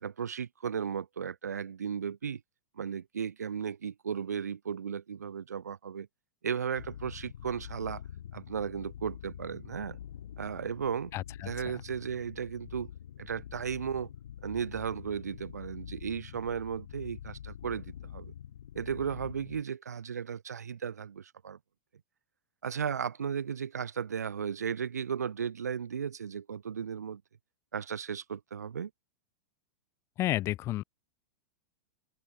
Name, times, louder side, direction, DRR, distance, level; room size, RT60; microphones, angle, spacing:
voice 1, 0.0-2.4 2.8-6.1 6.4-8.0 8.3-10.0 10.4-11.1 11.4-12.9 13.2-14.1 14.4-18.3 18.8-21.6 22.6-27.2 27.7-28.9, right 7 dB, 85° right, 0.5 m, -35 dB
sound 1, 6.8-19.6, left 10 dB, 75° left, 1.0 m, -46 dB
voice 2, 30.2-30.8, left 15 dB, 30° left, 0.4 m, -30 dB
open air
hypercardioid pair, 100°, 9 cm